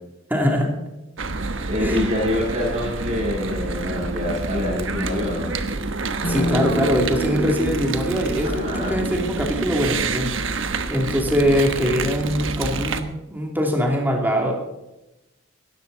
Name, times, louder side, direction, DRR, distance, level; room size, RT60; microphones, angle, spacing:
voice 1, 0.3-0.7 1.8-2.0 6.3-10.3 10.6-14.5, equal, 10° right, 0 dB, 2.7 m, -22 dB
sound 1, 1.2-13.0, right 3 dB, 60° right, 1.2 m, -28 dB
voice 2, 1.7-5.5 8.4-9.0, left 1 dB, 35° right, -9 dB, 7.0 m, -25 dB
sound 2, 6.2-10.8, right 1 dB, 50° left, 5.0 m, -29 dB
18.0 x 13.5 x 4.0 m, 0.95 s
head